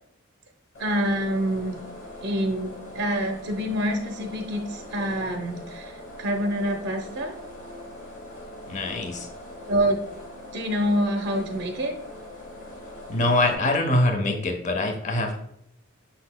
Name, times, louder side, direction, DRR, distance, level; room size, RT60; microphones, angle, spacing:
sound 1, 0.7-13.5, left 1 dB, 65° left, 1.1 m, -42 dB
voice 1, 0.8-1.8 2.2-5.9 6.2-7.3 9.7-10.0 10.5-11.9, equal, 55° right, 4 dB, 0.5 m, -26 dB
voice 2, 8.7-9.3 13.1-15.4, left 1 dB, 35° left, 4 dB, 0.6 m, -24 dB
5.4 x 4.0 x 2.2 m, 0.75 s
head